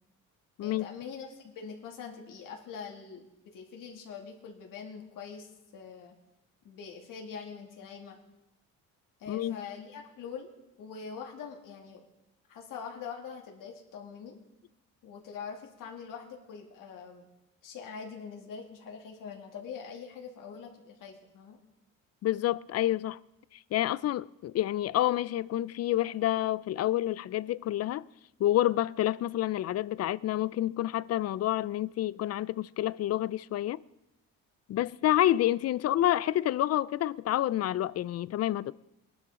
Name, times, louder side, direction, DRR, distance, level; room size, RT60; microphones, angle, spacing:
voice 1, 0.6-6.1 6.6-8.2 9.2-10.5 10.8-12.0 12.5-14.4 15.0-17.3 17.6-21.6, left 6 dB, 70° left, 2.5 m, -43 dB
voice 2, 9.3-9.6 22.2-23.2 23.7-28.1 28.4-33.8 34.7-38.7, left 13 dB, 50° left, 0.4 m, -28 dB
20.0 x 12.0 x 3.7 m
cardioid pair, 115°, 34 cm